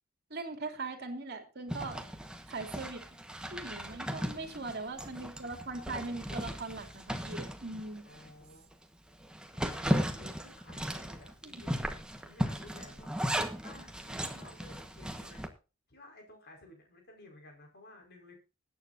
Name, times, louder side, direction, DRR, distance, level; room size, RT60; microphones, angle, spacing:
voice 1, 0.3-2.0 2.5-3.0 3.5-8.0 9.8-9.9 11.4-11.6, right 3 dB, 50° right, 6 dB, 2.7 m, -40 dB
Zipper (clothing), 1.7-8.3 8.7-8.8 9.2-15.5, equal, 5° right, 1.3 m, -36 dB
voice 2, 4.2-5.1 8.0-8.6 9.5-11.9 12.2-13.1 13.6-15.5 15.9-18.3, left 2 dB, 50° left, 2 dB, 4.9 m, -55 dB
21.0 x 9.2 x 2.7 m, 0.31 s
head